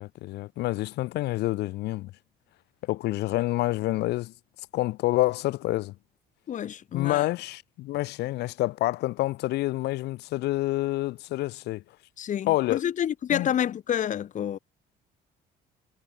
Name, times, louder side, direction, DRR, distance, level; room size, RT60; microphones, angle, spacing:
voice 1, 0.0-2.1 2.8-4.3 4.7-6.0 6.9-11.8 12.5-12.8 13.3-13.5, left 17 dB, 80° left, 1.9 m, -28 dB
voice 2, 6.5-7.2 12.2-14.6, left 9 dB, 50° left, 1.4 m, -28 dB
cardioid pair, 110°, 17 cm